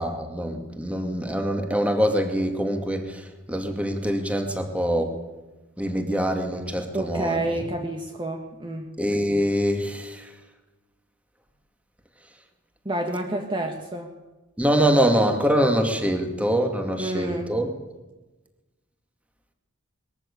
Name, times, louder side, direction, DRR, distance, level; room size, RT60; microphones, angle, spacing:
voice 1, 0.0-5.1 5.8-7.4 9.0-10.3 14.6-17.7, equal, 5° right, 4 dB, 2.4 m, -24 dB
voice 2, 6.9-8.9 12.8-14.1 17.0-17.5, right 1 dB, 25° right, 2 dB, 1.7 m, -29 dB
21.5 x 14.0 x 8.6 m, 1.1 s
head